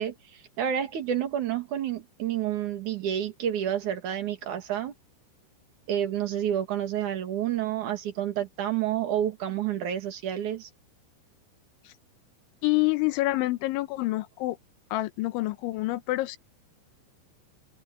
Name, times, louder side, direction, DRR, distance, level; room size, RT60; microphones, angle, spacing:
voice 1, 0.0-4.9 5.9-10.7, right 10 dB, 50° right, 2.8 m, -29 dB
voice 2, 12.6-14.6 14.9-16.4, left 19 dB, 80° left, 3.2 m, -27 dB
omnidirectional pair, 5.6 m